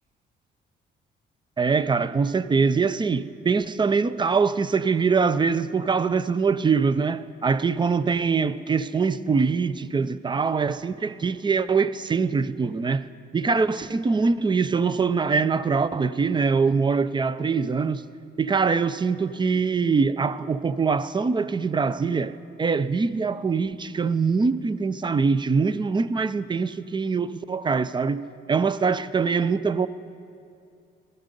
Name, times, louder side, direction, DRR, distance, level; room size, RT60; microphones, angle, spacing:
voice 1, 1.6-13.1 13.3-18.0 18.4-29.9, right 5 dB, 25° right, 0.5 m, -23 dB
16.5 x 11.5 x 5.2 m
cardioid pair, 90°, 20 cm